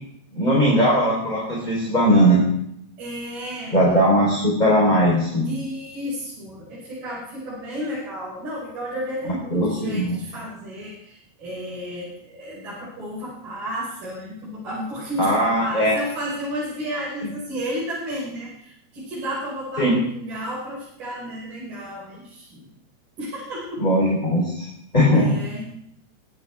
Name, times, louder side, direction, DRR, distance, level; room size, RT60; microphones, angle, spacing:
voice 1, 0.3-2.4 3.7-5.5 9.5-10.2 15.2-16.0 17.2-17.3 19.8-20.0 23.8-24.7 24.9-25.3, equal, 10° left, -4 dB, 3.9 m, -19 dB
voice 2, 3.0-3.8 5.4-22.7 23.2-23.9 25.1-25.7, equal, 55° right, -8 dB, 7.6 m, -32 dB
22.0 x 16.5 x 3.6 m, 0.73 s
omnidirectional pair, 4.8 m